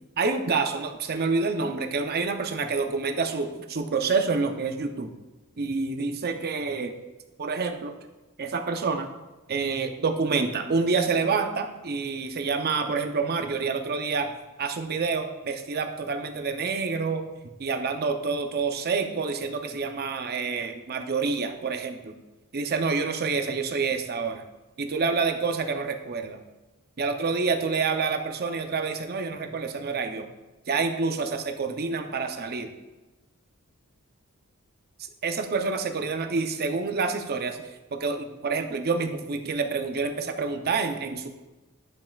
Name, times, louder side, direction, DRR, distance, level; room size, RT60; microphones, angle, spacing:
voice 1, 0.2-5.1 5.6-6.9 7.4-7.9 8.4-9.1 9.5-14.3 14.6-17.3 17.6-22.1 22.5-24.4 24.8-26.4 27.0-30.3 30.7-32.7 35.2-37.6 37.9-41.3, right 4 dB, 45° right, 6 dB, 0.6 m, -27 dB
10.5 x 5.4 x 2.3 m, 1.1 s
head